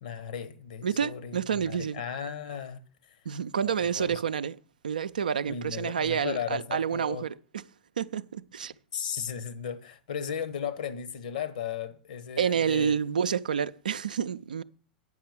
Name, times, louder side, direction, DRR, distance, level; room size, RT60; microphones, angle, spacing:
voice 1, 0.0-1.4 1.7-2.8 3.1-3.2 3.6-4.2 5.4-7.2 8.9-12.9, left 8 dB, 65° left, 1.1 m, -36 dB
voice 2, 0.8-2.0 3.3-4.6 4.8-7.6 8.0-8.7 12.4-14.6, right 7 dB, 70° right, 0.5 m, -29 dB
9.1 x 5.9 x 8.3 m
figure-of-eight pair, 90°, 5 cm